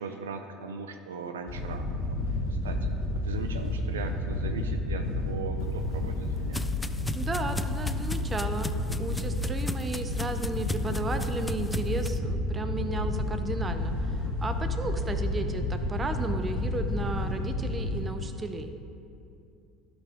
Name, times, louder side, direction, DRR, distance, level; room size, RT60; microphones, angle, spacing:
voice 1, 0.0-2.2 2.5-2.9 3.2-6.6, right 5 dB, 80° right, 7 dB, 0.4 m, -39 dB
Wind / Boat Water vehicle, 1.5-18.0, left 2 dB, 65° left, 1.2 m, -31 dB
sound 1, 5.6-12.2, left 2 dB, 10° left, 0.3 m, -38 dB
voice 2, 7.1-8.7 9.0-18.7, right 3 dB, 25° right, 8 dB, 0.6 m, -34 dB
12.0 x 5.1 x 3.5 m, 2.6 s
hypercardioid pair, 70°, 0 cm